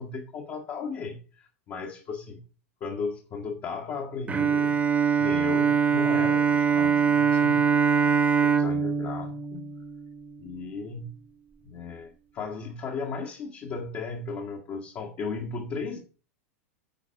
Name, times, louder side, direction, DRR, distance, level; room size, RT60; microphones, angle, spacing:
voice 1, 0.0-2.4 2.8-4.8 5.2-8.1 8.4-9.7 10.4-11.2 11.6-16.0, left 4 dB, 35° left, 0 dB, 1.8 m, -36 dB
Bowed string instrument, 4.3-10.5, right 6 dB, 20° right, 1.2 m, -23 dB
10.0 x 4.2 x 5.8 m, 0.36 s
hypercardioid pair, 105°, 8 cm